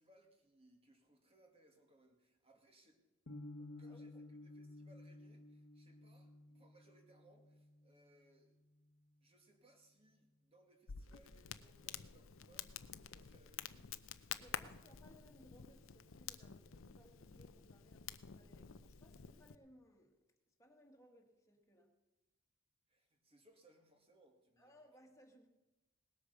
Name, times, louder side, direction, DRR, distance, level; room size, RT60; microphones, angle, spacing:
voice 1, 0.0-3.0 3.8-8.5 9.2-14.7 22.9-24.9, right 1 dB, 25° right, 4 dB, 2.1 m, -69 dB
sound 1, 3.3-9.3, left 2 dB, 85° left, 1.2 m, -55 dB
voice 2, 3.6-4.0 14.4-20.2 20.6-21.9 24.6-25.5, equal, 15° left, 1 dB, 1.9 m, -65 dB
Crackle, 10.9-19.6, left 8 dB, 65° left, 0.6 m, -50 dB
19.0 x 8.3 x 6.8 m, 1.1 s
head